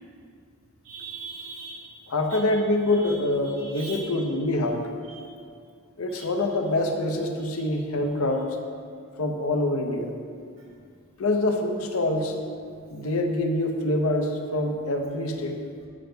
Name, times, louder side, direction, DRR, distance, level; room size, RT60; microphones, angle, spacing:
voice 1, 0.8-1.9 2.3-2.4 2.9-3.1 3.5-4.0 5.1-5.2 6.1-6.3 7.5-7.7, right 3 dB, 65° right, -7 dB, 1.7 m, -40 dB
voice 2, 2.1-4.9 6.0-8.5 9.2-10.1 11.2-12.4 12.9-15.6, left 1 dB, 75° left, 3 dB, 0.8 m, -25 dB
13.5 x 6.7 x 2.3 m, 2.2 s
head